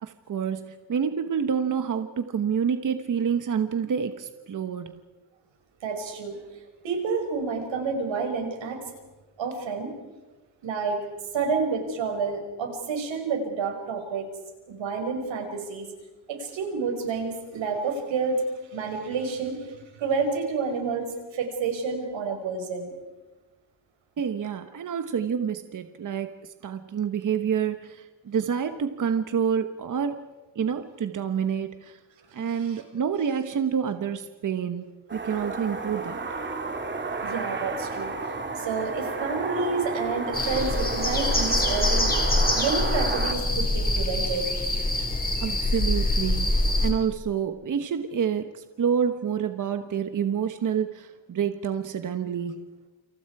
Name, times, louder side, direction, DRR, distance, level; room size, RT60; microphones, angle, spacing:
voice 1, 0.0-4.9 24.2-26.3 26.6-30.3 30.5-32.0 32.3-36.2 45.4-52.7, right 7 dB, 45° right, 8 dB, 1.2 m, -28 dB
voice 2, 5.8-6.4 6.8-8.9 9.4-9.9 10.6-11.0 11.3-14.2 14.7-15.9 16.3-18.4 18.7-21.1 21.3-22.9 32.3-32.8 37.2-38.1 38.6-42.1 42.5-44.5, right 4 dB, 90° right, 3 dB, 5.7 m, -29 dB
sound 1, 35.1-43.3, right 3 dB, 25° right, 2.3 m, -32 dB
sound 2, 40.3-46.9, left 1 dB, 20° left, 4.9 m, -25 dB
29.0 x 27.5 x 4.8 m, 1.2 s
wide cardioid pair, 160°, 44 cm